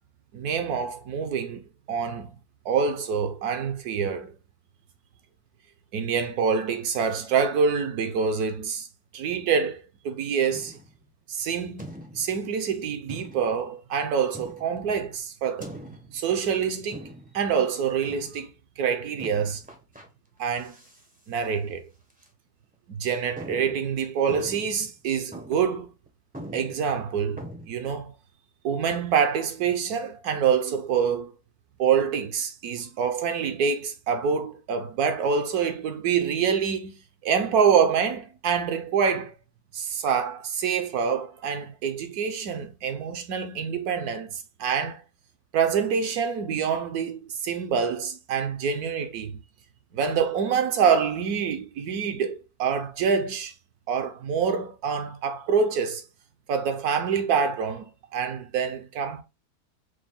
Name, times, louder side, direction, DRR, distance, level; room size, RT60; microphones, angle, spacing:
voice 1, 0.3-1.6 1.9-2.3 2.6-4.3 5.9-8.9 9.1-10.8 11.3-11.8 12.1-15.7 16.1-17.0 17.3-18.5 18.8-19.6 20.4-20.8 21.3-21.8 22.9-25.9 26.5-27.4 27.7-28.1 28.6-31.3 31.8-36.9 37.2-39.4 39.7-45.0 45.5-49.4 49.9-53.5 53.9-56.0 56.5-59.2, right 6 dB, 70° right, 1.1 m, -26 dB
sound 1, 10.5-11.0 11.8-12.4 13.1-13.7 14.3-14.9 15.6-16.3 16.9-17.5 18.1-18.5 19.2-20.1 20.5-21.1 21.3-21.4 22.1-22.3 22.7-22.8 23.4-24.9 25.3-25.8 26.1-26.2 26.3-27.7, right 1 dB, 10° right, 0.4 m, -42 dB
4.8 x 2.2 x 3.6 m
omnidirectional pair, 1.8 m